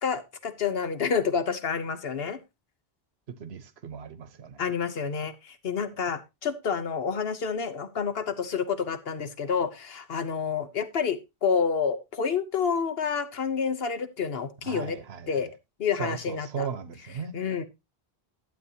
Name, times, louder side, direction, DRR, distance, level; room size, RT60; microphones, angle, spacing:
voice 1, 0.0-2.4 4.6-15.0 15.3-15.5 15.8-16.7 17.3-17.6, left 6 dB, 70° left, 1.3 m, -29 dB
voice 2, 3.3-4.7 14.6-15.5 16.0-17.4, right 7 dB, 75° right, 1.3 m, -37 dB
12.0 x 8.3 x 2.8 m
omnidirectional pair, 1.1 m